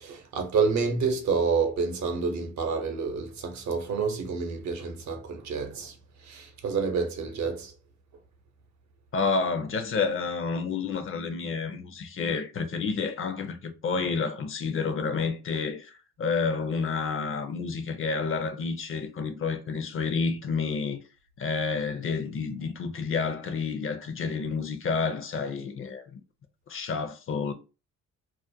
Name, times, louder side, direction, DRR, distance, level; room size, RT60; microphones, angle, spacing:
voice 1, 0.0-5.9 6.2-7.7, right 5 dB, 65° right, 0.7 m, -28 dB
voice 2, 9.1-21.0 21.4-26.2 26.7-27.5, left 4 dB, 45° left, 0.5 m, -29 dB
2.4 x 2.1 x 2.6 m
cardioid pair, 90°, 30 cm